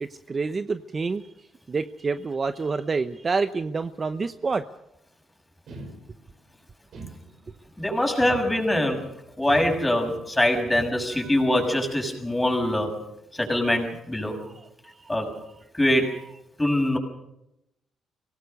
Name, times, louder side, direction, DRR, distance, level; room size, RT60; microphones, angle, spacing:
voice 1, 0.0-1.2 1.7-4.6 11.1-11.5 14.4-14.5 15.0-15.1, right 4 dB, 35° right, 11 dB, 0.9 m, -28 dB
sound 1, 5.7-6.4 6.9-7.7 8.2-9.0 9.5-10.3 10.7-11.3, right 3 dB, 65° right, 5.9 m, -42 dB
voice 2, 7.8-9.0 9.4-13.0 13.3-14.4 15.1-15.3 15.7-16.1 16.6-17.0, left 1 dB, 10° left, 2 dB, 6.5 m, -23 dB
24.5 x 18.5 x 6.6 m, 0.85 s
cardioid pair, 90°, 0 cm